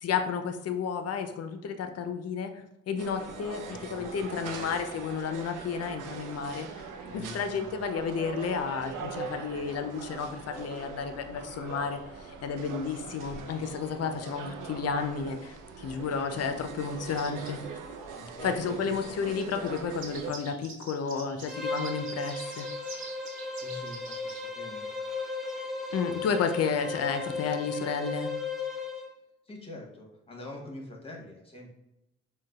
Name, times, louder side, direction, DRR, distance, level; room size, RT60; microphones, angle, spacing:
voice 1, 0.0-6.9 7.1-17.6 18.4-22.7 25.9-28.3, left 6 dB, 50° left, 7 dB, 0.5 m, -32 dB
sound 1, 3.0-20.3, right 5 dB, 80° right, 0.5 m, -42 dB
voice 2, 3.7-4.8 7.0-7.8 14.0-14.2 14.6-14.7 18.2-18.5 18.8-19.1 23.6-24.9 29.5-31.7, left 1 dB, 20° left, 0 dB, 0.9 m, -45 dB
sound 2, 17.1-17.5 19.3-24.5, right 4 dB, 60° right, 1.3 m, -45 dB
Bowed string instrument, 21.5-29.1, left 3 dB, ahead, 0.5 m, -36 dB
3.8 x 2.2 x 2.3 m, 0.88 s
cardioid pair, 60°, 32 cm